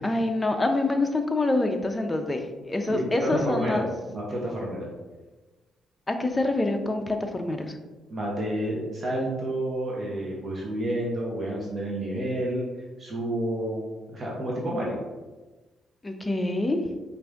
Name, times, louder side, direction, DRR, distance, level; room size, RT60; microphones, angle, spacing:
voice 1, 0.0-3.9 6.1-7.8 16.0-16.8, left 2 dB, 20° left, 5 dB, 0.5 m, -26 dB
voice 2, 2.9-3.8 4.1-4.9 8.1-12.6 13.0-15.0, right 1 dB, 40° right, -4 dB, 0.9 m, -30 dB
4.8 x 2.6 x 3.5 m, 1.2 s
cardioid pair, 90°, 0 cm